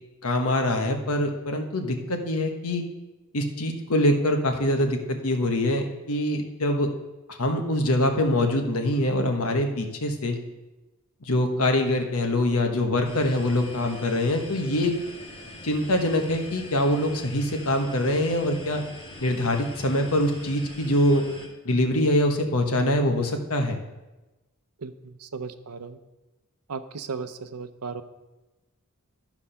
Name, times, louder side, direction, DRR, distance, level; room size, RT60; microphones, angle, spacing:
voice 1, 0.2-2.8 3.3-6.9 7.3-10.4 11.2-14.9 15.6-18.8 19.2-21.2 21.6-23.8, left 1 dB, 70° left, 4 dB, 1.2 m, -24 dB
sound 1, 13.0-21.5, left 1 dB, 25° left, 1.9 m, -43 dB
voice 2, 24.8-26.0 26.7-28.0, right 5 dB, 90° right, 10 dB, 0.7 m, -36 dB
13.0 x 4.8 x 5.7 m, 1.1 s
head